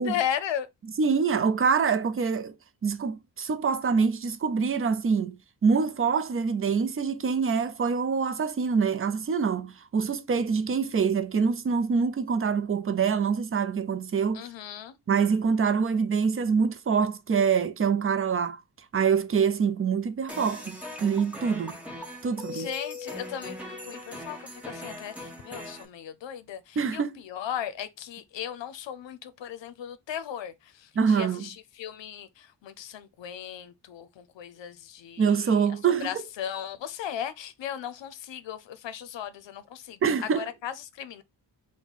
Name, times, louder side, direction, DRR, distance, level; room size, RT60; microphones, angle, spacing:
voice 1, 0.0-0.7 14.3-15.0 22.5-30.5 31.1-35.2 36.0-40.0 40.3-41.2, left 9 dB, 90° left, 0.6 m, -36 dB
voice 2, 0.8-2.5 2.8-5.4 5.6-14.4 15.1-18.6 18.9-21.8 22.2-22.7 26.8-27.2 31.0-31.5 35.2-36.2 40.0-40.5, right 6 dB, 30° right, 0.4 m, -25 dB
sound 1, 20.3-25.8, left 2 dB, 5° right, 1.0 m, -40 dB
4.5 x 2.2 x 3.9 m
wide cardioid pair, 165°, 43 cm